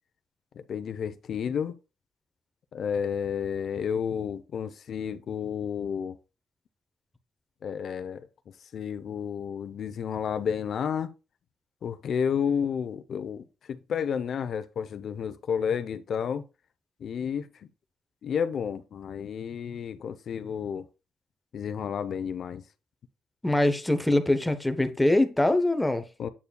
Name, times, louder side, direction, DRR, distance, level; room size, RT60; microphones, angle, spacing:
voice 1, 0.6-1.7 2.7-6.2 7.6-8.3 8.7-11.1 11.8-16.4 17.0-17.4 18.2-20.8 21.5-22.6 26.2-26.3, left 7 dB, 60° left, 0.8 m, -31 dB
voice 2, 23.4-26.0, left 1 dB, 10° left, 0.9 m, -23 dB
8.7 x 6.8 x 2.3 m
cardioid pair, 90°, 0 cm